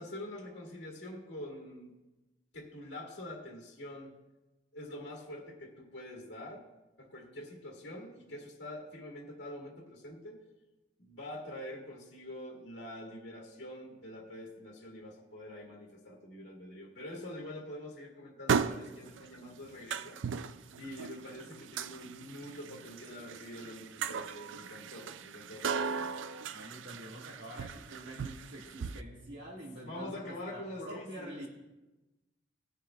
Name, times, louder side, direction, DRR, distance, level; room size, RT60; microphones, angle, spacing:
voice 1, 0.0-1.9 2.5-4.1 4.7-6.6 7.0-10.4 11.0-20.2 20.8-26.1 29.8-31.5, left 1 dB, 70° left, -2 dB, 1.7 m, -45 dB
sound 1, 18.5-29.0, right 6 dB, 75° right, 0.4 m, -37 dB
voice 2, 26.5-31.5, right 1 dB, 60° right, -6 dB, 1.6 m, -46 dB
18.0 x 10.0 x 2.3 m, 1.1 s
head